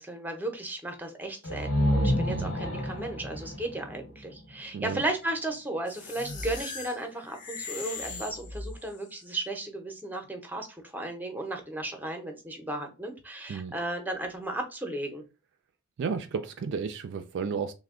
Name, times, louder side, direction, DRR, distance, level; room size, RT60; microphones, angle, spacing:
voice 1, 0.0-15.2, right 1 dB, 10° right, 0.6 m, -35 dB
sound 1, 1.4-5.2, equal, 65° left, 1.2 m, -29 dB
sound 2, 5.9-9.1, left 3 dB, 35° left, 0.7 m, -39 dB
voice 2, 16.0-17.7, right 5 dB, 55° right, 0.3 m, -33 dB
3.3 x 2.1 x 3.6 m
head